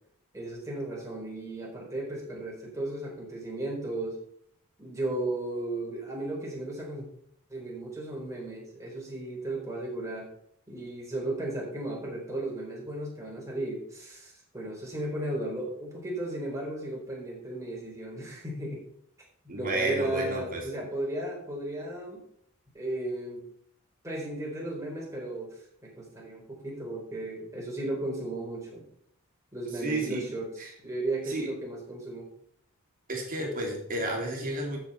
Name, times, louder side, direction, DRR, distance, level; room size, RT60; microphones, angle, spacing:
voice 1, 0.3-4.2 4.8-7.0 7.5-10.3 10.7-18.8 19.4-22.2 22.7-23.4 24.0-25.5 25.8-28.8 29.5-30.5 30.8-32.3, right 1 dB, 15° right, -3 dB, 4.1 m, -35 dB
voice 2, 19.5-20.6 29.8-30.2 30.6-30.7 31.3-31.5 33.1-34.8, right 2 dB, 40° right, 0 dB, 2.9 m, -31 dB
13.5 x 7.6 x 4.3 m, 0.69 s
head